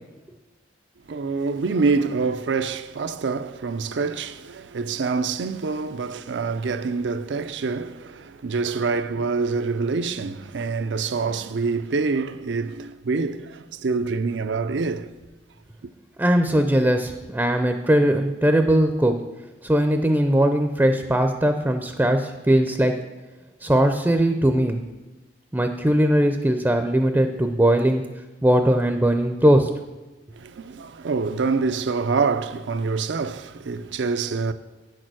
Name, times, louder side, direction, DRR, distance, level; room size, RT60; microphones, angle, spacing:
voice 1, 1.1-15.1 15.8-15.9 30.3-34.5, right 4 dB, 80° right, 0.5 m, -26 dB
voice 2, 16.2-19.2 19.6-23.0 23.6-24.8 25.5-28.0 28.4-29.7, right 1 dB, 10° right, 0.5 m, -20 dB
8.5 x 6.6 x 6.2 m
head